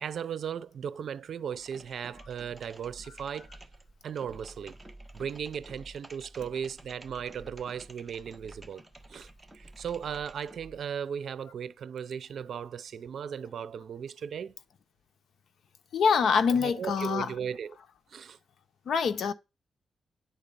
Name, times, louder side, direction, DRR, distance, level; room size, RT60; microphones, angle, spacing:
voice 1, 0.0-3.5 4.0-4.8 5.1-8.8 9.1-9.3 9.5-14.5 16.5-17.8 18.1-18.4, right 7 dB, 70° right, 0.6 m, -36 dB
sound 1, 1.5-10.9, right 1 dB, 10° right, 1.3 m, -51 dB
voice 2, 15.9-17.3 18.9-19.3, left 6 dB, 75° left, 0.8 m, -25 dB
10.5 x 4.1 x 6.8 m
cardioid pair, 95°, 0 cm